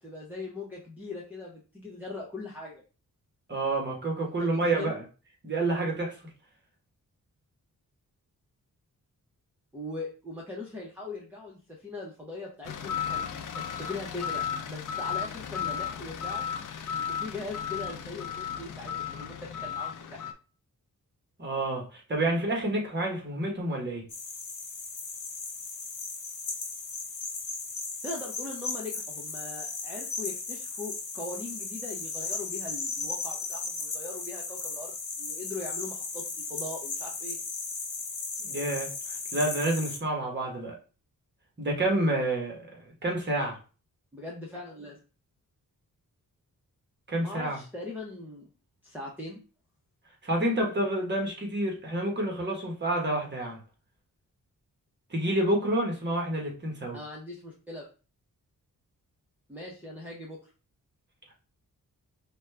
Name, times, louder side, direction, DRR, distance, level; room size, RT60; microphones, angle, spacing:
voice 1, 0.0-2.8 4.2-4.9 9.7-14.4 14.7-16.4 16.9-20.3 28.0-36.2 36.5-37.4 44.1-45.0 47.2-48.5 48.8-49.4 56.9-57.9 59.5-60.5, left 2 dB, 5° right, 0.7 m, -40 dB
voice 2, 3.5-5.0 5.4-6.1 21.4-24.0 38.4-40.8 41.6-43.6 47.1-47.6 50.2-53.6 55.1-57.0, right 1 dB, 30° right, 1.2 m, -29 dB
sound 1, 12.7-20.3, left 8 dB, 65° left, 0.5 m, -34 dB
sound 2, 24.1-40.0, left 4 dB, 85° left, 1.0 m, -36 dB
5.0 x 2.3 x 3.3 m
wide cardioid pair, 165°, 34 cm